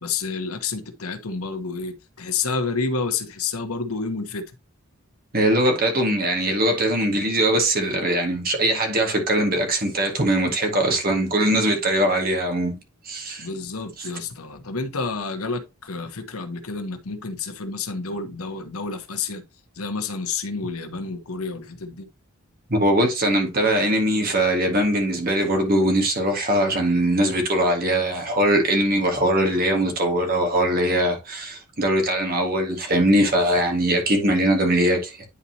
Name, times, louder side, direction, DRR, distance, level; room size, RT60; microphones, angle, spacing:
voice 1, 0.0-4.4 13.4-19.4 19.7-22.1, left 4 dB, 90° left, 1.2 m, -29 dB
voice 2, 5.3-12.8 13.1-13.5 22.7-35.2, right 1 dB, 40° right, 1.8 m, -21 dB
10.0 x 4.1 x 2.8 m
head